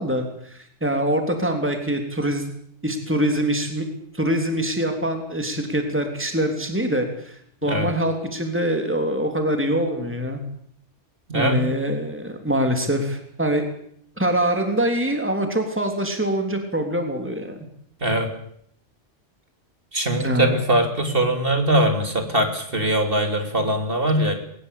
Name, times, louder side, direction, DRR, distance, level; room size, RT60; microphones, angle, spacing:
voice 1, 0.0-2.5 2.8-3.9 4.1-10.4 11.3-13.7 14.2-17.6 20.2-20.6, right 1 dB, 10° right, 5 dB, 3.5 m, -24 dB
voice 2, 11.3-11.6 18.0-18.3 19.9-24.3, right 1 dB, 50° right, 5 dB, 3.7 m, -21 dB
21.0 x 21.0 x 8.5 m, 0.68 s
omnidirectional pair, 1.2 m